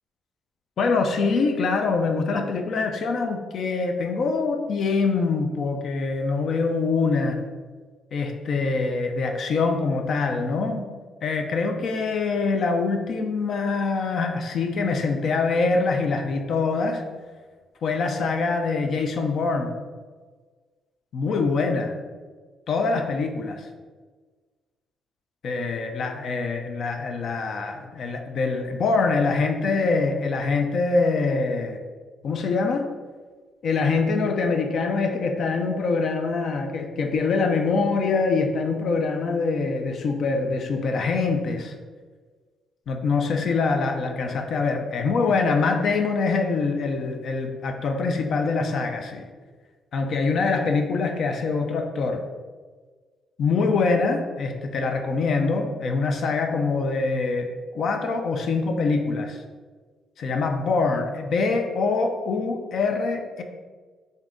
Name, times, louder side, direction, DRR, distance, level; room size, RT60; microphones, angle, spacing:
voice 1, 0.8-7.4 8.1-10.8 11.2-17.0 17.8-19.7 21.1-22.0 22.7-23.7 25.4-31.8 32.2-32.9 33.6-41.7 42.9-49.3 49.9-52.2 53.4-59.4 60.2-63.4, left 4 dB, 60° left, 4 dB, 0.4 m, -24 dB
3.6 x 2.7 x 3.5 m, 1.4 s
cardioid pair, 90°, 0 cm